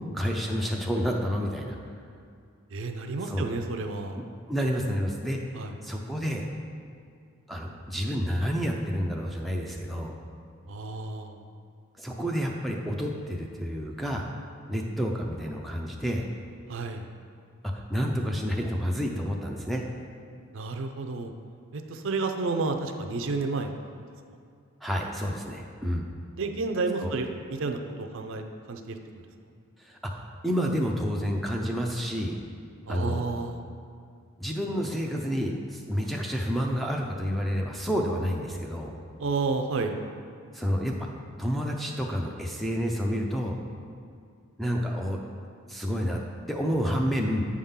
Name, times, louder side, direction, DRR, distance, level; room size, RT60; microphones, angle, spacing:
voice 1, 0.0-1.8 3.2-3.5 4.2-4.3 4.5-5.4 5.8-6.5 7.5-10.1 12.0-14.3 14.7-16.2 17.7-19.8 24.8-26.0 27.0-27.1 29.8-32.4 32.9-33.3 34.4-38.9 40.5-41.1 41.4-43.6 44.6-45.2 45.7-46.2 46.5-47.5, equal, ahead, 0 dB, 0.4 m, -29 dB
voice 2, 2.7-4.2 5.5-5.7 10.7-11.4 16.7-17.0 20.5-21.3 21.7-23.7 26.4-29.0 32.9-33.6 39.2-40.0, right 3 dB, 55° right, 6 dB, 0.5 m, -31 dB
8.5 x 3.7 x 5.6 m, 2.3 s
head